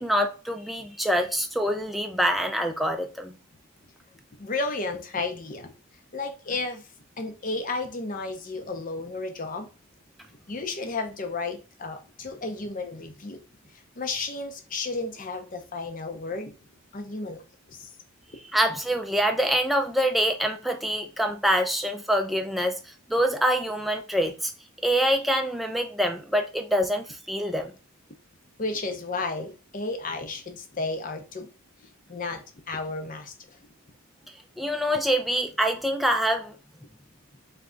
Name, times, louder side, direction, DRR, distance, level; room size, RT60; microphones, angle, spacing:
voice 1, 0.0-3.4 18.5-24.5 24.8-27.7 34.6-36.5, equal, ahead, 0.4 m, -25 dB
voice 2, 4.4-5.7 6.1-6.9 7.2-9.7 10.5-13.4 14.0-16.5 16.9-17.4 17.7-17.9 28.6-31.5 32.1-33.3, left 3 dB, 40° left, 0.7 m, -32 dB
3.5 x 3.3 x 3.8 m
head